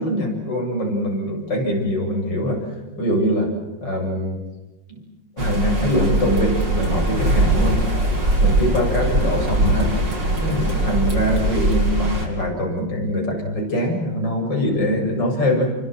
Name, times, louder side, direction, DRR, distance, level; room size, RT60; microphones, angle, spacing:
voice 1, 0.0-2.7 3.0-3.5 3.8-4.4 4.9-5.0 5.4-7.8 8.4-9.9 10.3-15.8, equal, 85° left, 1 dB, 8.4 m, -23 dB
sound 1, 5.4-12.3, right 1 dB, 85° right, 6.1 m, -21 dB
28.5 x 24.0 x 7.9 m, 1.1 s
omnidirectional pair, 1.9 m